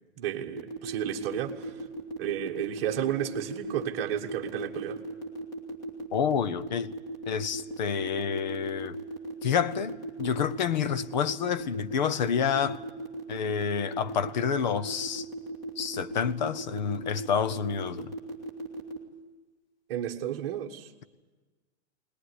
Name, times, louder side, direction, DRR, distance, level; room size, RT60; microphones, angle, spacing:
voice 1, 0.2-1.7 2.2-5.0 19.9-20.9, right 11 dB, 25° right, 0 dB, 1.4 m, -32 dB
sound 1, 0.5-19.0, right 1 dB, 10° left, 1.8 m, -37 dB
voice 2, 6.1-6.9 7.3-9.0 9.4-12.8 13.3-15.3 15.8-18.1, left 7 dB, 40° left, 16 dB, 0.8 m, -29 dB
20.5 x 19.0 x 9.8 m, 1.3 s
hypercardioid pair, 180°, 34 cm